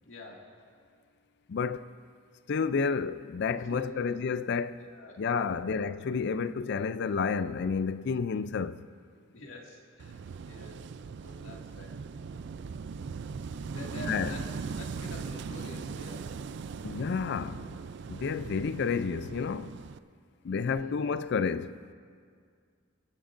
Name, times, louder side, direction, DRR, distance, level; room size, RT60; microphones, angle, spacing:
voice 1, 0.0-0.5 3.7-4.1 4.8-5.8 9.3-10.2 10.4-10.8 11.2-11.9 13.7-14.5 14.8-16.3 20.5-21.0, left 2 dB, 80° left, 2.1 m, -46 dB
voice 2, 1.5-1.9 2.5-4.8 5.2-8.8 14.1-14.3 16.8-17.7 18.1-19.8 20.4-21.7, left 5 dB, 60° left, 0.4 m, -30 dB
Wind / Waves surf, 10.0-20.0, right 5 dB, 65° right, 0.4 m, -40 dB
28.5 x 11.0 x 2.6 m
head